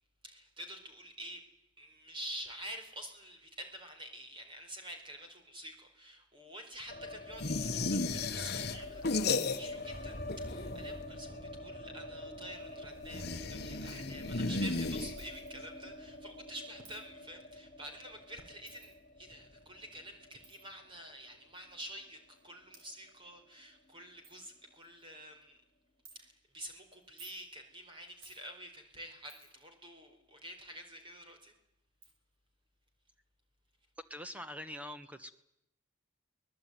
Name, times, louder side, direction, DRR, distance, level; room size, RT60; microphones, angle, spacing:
voice 1, 0.2-1.4 1.8-25.6 26.1-31.5, equal, 25° right, 4 dB, 4.4 m, -48 dB
sound 1, 6.9-23.0 23.3-23.4 23.6-24.3, left 1 dB, 35° left, 3.4 m, -46 dB
sound 2, 7.4-10.0 10.2-11.0 13.0-15.6, left 3 dB, 50° left, 1.2 m, -35 dB
Coin (dropping), 13.9-14.1 15.2-15.5 16.8-17.1 18.7-19.0 20.4-20.6 21.6-21.7 22.4-22.5 22.7-22.9 23.5-23.6 23.9-24.0 24.2-24.4 24.8-25.1 26.1-26.2 27.0-27.5 28.2-28.4 29.3-29.7 31.3-31.4 32.0-32.1, right 5 dB, 75° right, 5.8 m, -57 dB
voice 2, 34.1-35.3, equal, 5° right, 9 dB, 1.3 m, -44 dB
24.0 x 20.0 x 9.4 m, 0.82 s
head